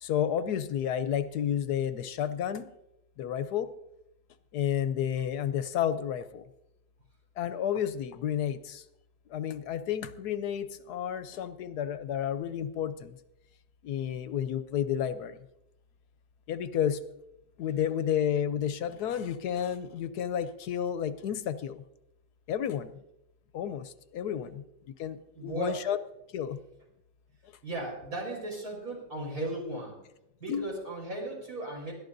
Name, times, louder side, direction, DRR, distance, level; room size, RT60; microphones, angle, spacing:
voice 1, 0.0-2.7 3.2-3.7 4.5-6.5 7.4-8.8 9.3-13.2 13.8-15.4 16.5-17.0 17.6-21.8 22.5-22.9 23.5-24.6 25.0-26.0 26.3-26.6 30.5-30.7, left 9 dB, 75° left, 12 dB, 1.1 m, -31 dB
voice 2, 25.3-25.8 27.6-30.0 30.4-31.9, right 2 dB, 60° right, -1 dB, 5.4 m, -36 dB
21.0 x 13.5 x 2.6 m, 0.87 s
omnidirectional pair, 1.8 m